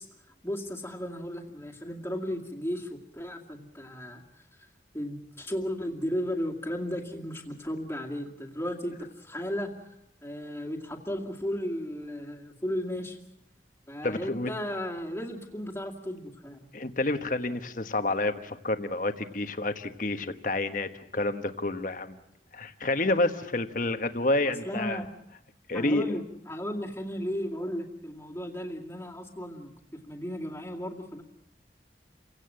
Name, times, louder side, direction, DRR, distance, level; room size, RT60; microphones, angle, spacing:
voice 1, 0.0-4.4 4.9-9.9 10.2-13.2 13.9-16.7 24.6-25.1 25.7-31.2, equal, 15° left, 1 dB, 2.3 m, -35 dB
voice 2, 14.0-14.5 16.7-22.2 22.5-25.0 25.7-26.1, left 2 dB, 45° left, 8 dB, 1.4 m, -29 dB
29.0 x 17.0 x 7.7 m, 0.86 s
head